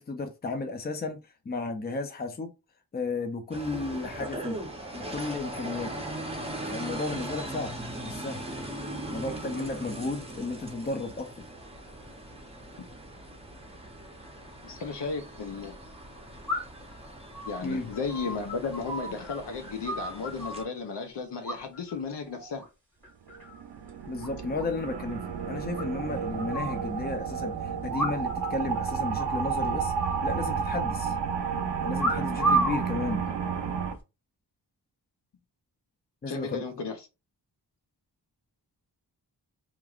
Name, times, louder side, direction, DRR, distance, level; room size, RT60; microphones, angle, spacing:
voice 1, 0.0-2.5 2.9-4.6 4.9-6.0 6.7-7.7 8.0-8.4 9.1-11.3 17.6-17.9 24.1-29.9 30.2-31.1 31.8-33.3 36.2-36.6, left 3 dB, 25° left, 0.5 m, -33 dB
sound 1, 3.5-20.7, right 1 dB, 15° right, 0.7 m, -40 dB
voice 2, 14.6-15.8 17.5-22.6 36.3-37.0, left 4 dB, 80° left, 0.7 m, -34 dB
sound 2, 14.7-14.8 16.5-16.9 17.3-19.4 19.6-20.7 21.4-22.0 22.3-22.6 23.0-23.6 23.9-24.0 24.2-24.3 24.6-24.7 25.0-25.1 25.8-26.8 27.9-28.5 28.8-28.9 29.2-29.5 30.0-30.9 32.0-32.8 33.6-34.0, right 2 dB, 5° left, 1.7 m, -31 dB
sound 3, 23.3-33.9, right 6 dB, 85° right, 0.6 m, -31 dB
3.0 x 2.4 x 2.4 m
wide cardioid pair, 100°, 41 cm